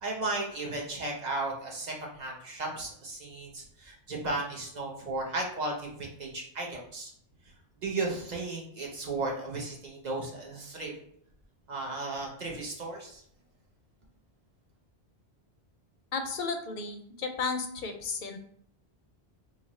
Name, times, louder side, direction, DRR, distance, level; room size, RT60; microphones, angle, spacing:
voice 1, 0.0-7.1 7.8-10.9 11.7-13.2, right 2 dB, 45° right, -1 dB, 0.9 m, -35 dB
voice 2, 16.1-18.4, left 4 dB, 60° left, 5 dB, 0.6 m, -33 dB
3.2 x 2.5 x 4.1 m, 0.66 s
omnidirectional pair, 1.1 m